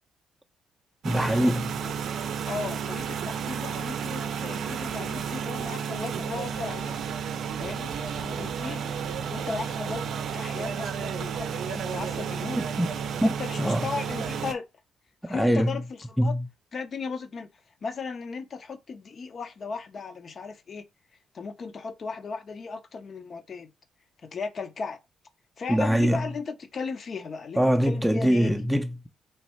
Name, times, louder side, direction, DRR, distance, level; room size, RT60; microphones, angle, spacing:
voice 1, 1.0-1.8 12.6-12.9 13.2-13.3 13.6-13.9 15.3-15.8 16.2-16.4 25.7-26.2 27.6-29.1, equal, ahead, 0.5 m, -23 dB
sound 1, 1.0-14.5, right 7 dB, 70° right, 0.5 m, -32 dB
voice 2, 2.5-7.0 7.6-8.9 9.3-10.1 10.3-12.7 13.2-14.7 15.2-16.4 16.7-17.5 17.8-20.9 21.3-23.7 24.2-25.0 25.6-28.7, left 4 dB, 50° left, 0.6 m, -36 dB
3.2 x 2.7 x 4.3 m
cardioid pair, 85°, 0 cm